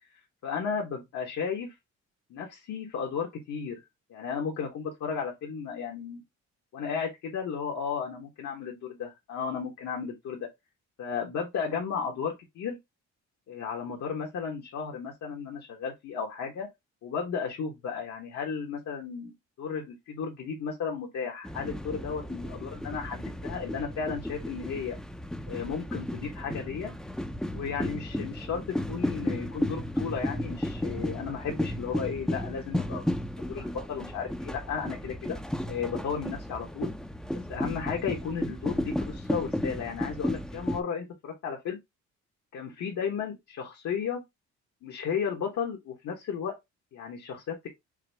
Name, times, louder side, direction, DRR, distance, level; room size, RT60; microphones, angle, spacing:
voice 1, 0.4-1.7 2.3-3.8 4.1-6.2 6.7-10.5 11.0-12.8 13.5-16.7 17.0-25.0 25.5-26.9 27.5-28.6 28.9-33.0 33.4-35.4 35.7-36.9 37.5-41.8 42.5-44.2 44.8-46.5 46.9-47.7, left 6 dB, 65° left, 1.1 m, -34 dB
sound 1, 21.4-40.8, left 1 dB, ahead, 0.5 m, -34 dB
4.8 x 2.0 x 3.3 m
cardioid pair, 90°, 30 cm